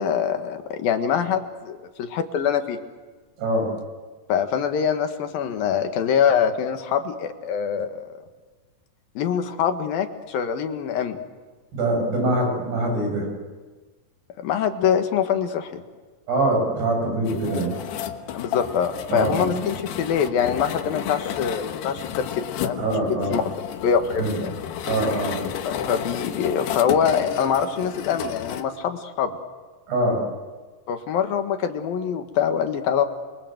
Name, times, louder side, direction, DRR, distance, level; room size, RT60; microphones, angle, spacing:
voice 1, 0.0-2.8 4.3-8.0 9.2-11.2 14.4-15.8 18.3-23.4 23.8-24.5 25.6-29.4 30.9-33.0, left 8 dB, 65° left, 7 dB, 3.2 m, -24 dB
voice 2, 3.4-3.7 11.7-13.3 16.3-17.8 19.1-19.5 22.8-23.4 24.2-24.4 24.9-25.4 29.9-30.2, right 2 dB, 80° right, 2 dB, 9.9 m, -23 dB
sound 1, 17.3-28.6, left 9 dB, 85° left, 3.5 m, -32 dB
29.0 x 24.0 x 7.9 m, 1.3 s
omnidirectional pair, 4.6 m